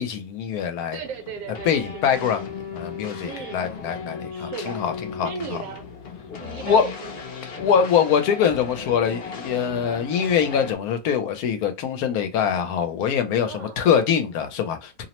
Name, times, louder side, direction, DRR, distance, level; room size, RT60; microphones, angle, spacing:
voice 1, 0.0-1.0 1.6-5.6 6.6-6.9 7.6-15.1, left 7 dB, 75° left, 1.0 m, -23 dB
voice 2, 0.9-2.2 3.2-3.7 4.2-4.8 5.2-5.9 6.4-7.4 13.4-13.8, right 6 dB, 70° right, 1.1 m, -37 dB
sound 1, 1.0-10.8, left 5 dB, 50° left, 0.7 m, -36 dB
2.7 x 2.0 x 2.9 m
omnidirectional pair, 1.7 m